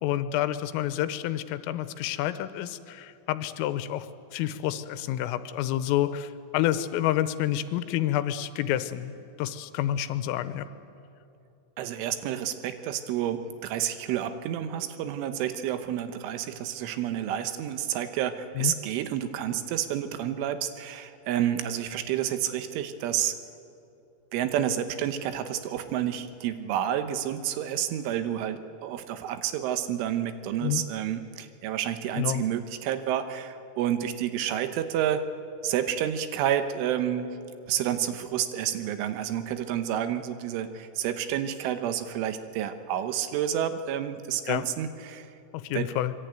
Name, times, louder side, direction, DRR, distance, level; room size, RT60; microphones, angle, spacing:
voice 1, 0.0-4.1 4.3-9.1 9.4-10.7 18.6-18.7 30.6-30.8 32.2-32.4 44.5-44.6 45.5-46.1, left 12 dB, 90° left, 12 dB, 3.5 m, -28 dB
voice 2, 11.8-23.4 24.3-35.2 35.6-37.4 37.7-45.3 45.7-45.9, right 10 dB, 75° right, 10 dB, 3.4 m, -29 dB
25.0 x 22.0 x 9.1 m, 2.7 s
omnidirectional pair, 5.8 m